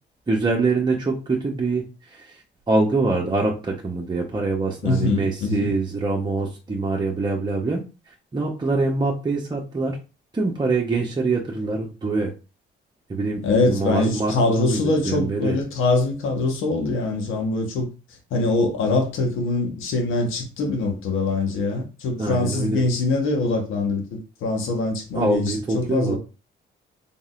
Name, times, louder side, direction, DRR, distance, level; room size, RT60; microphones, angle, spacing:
voice 1, 0.3-7.8 8.3-10.0 10.3-12.3 13.1-15.6 22.2-22.9 25.1-26.2, right 3 dB, 20° right, 1.0 m, -24 dB
voice 2, 4.8-5.7 13.4-17.9 18.3-26.2, left 2 dB, 90° left, 1.3 m, -23 dB
4.0 x 3.7 x 2.5 m
cardioid pair, 90°, 20 cm